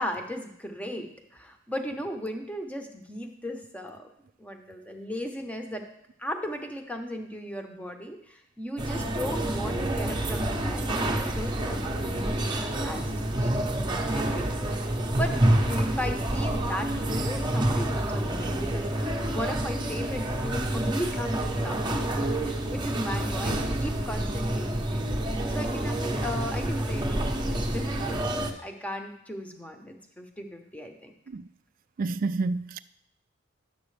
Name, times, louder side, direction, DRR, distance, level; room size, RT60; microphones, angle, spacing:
voice 1, 0.0-4.1 4.4-5.8 6.2-13.1 13.4-13.6 14.1-14.5 15.2-15.4 15.7-25.1 25.5-31.1, equal, 5° left, 0.9 m, -36 dB
sound 1, 8.8-28.5, right 1 dB, 20° right, 0.8 m, -28 dB
voice 2, 32.0-32.8, right 3 dB, 45° right, 0.3 m, -29 dB
11.0 x 7.3 x 3.3 m
head